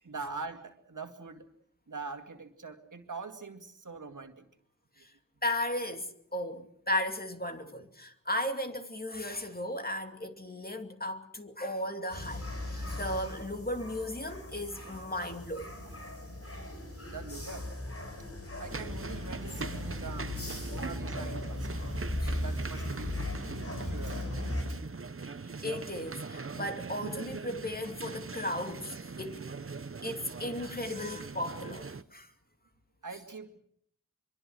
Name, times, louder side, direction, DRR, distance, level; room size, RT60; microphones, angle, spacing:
voice 1, 0.0-1.5 1.9-4.5 17.1-17.7 18.6-20.3 20.7-21.8 22.4-23.2 23.8-24.3 24.7-24.8 33.0-33.6, right 4 dB, 65° right, 2.2 m, -43 dB
voice 2, 5.4-15.7 18.5-18.6 20.7-20.9 22.2-22.4 25.6-29.4 30.0-32.3, left 1 dB, 30° left, 2.5 m, -36 dB
sound 1, 12.1-24.6, left 1 dB, 45° left, 6.5 m, -38 dB
sound 2, 18.7-32.0, right 4 dB, 40° right, 0.9 m, -41 dB
24.5 x 23.5 x 6.4 m
wide cardioid pair, 60°, 32 cm